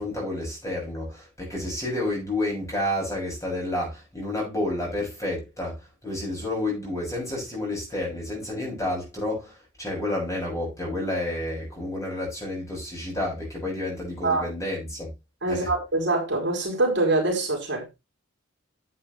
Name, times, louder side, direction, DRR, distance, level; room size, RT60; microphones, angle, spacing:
voice 1, 0.0-15.1 15.5-15.7, left 1 dB, 15° left, 7.0 m, -30 dB
voice 2, 15.4-18.0, right 2 dB, 55° right, 4.4 m, -24 dB
11.0 x 8.7 x 3.3 m
head